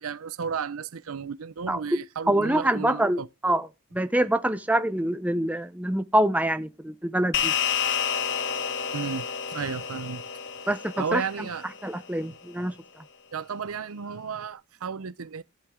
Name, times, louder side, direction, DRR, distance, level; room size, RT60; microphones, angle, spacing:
voice 1, 0.0-3.3 8.9-10.2 11.0-11.6 13.3-15.4, right 6 dB, 80° right, 0.6 m, -33 dB
voice 2, 2.3-3.7 3.9-7.5 10.7-11.2 11.8-12.7, right 1 dB, 5° right, 0.7 m, -25 dB
sound 1, 7.3-12.0, left 8 dB, 55° left, 1.8 m, -30 dB
14.5 x 10.5 x 3.7 m
head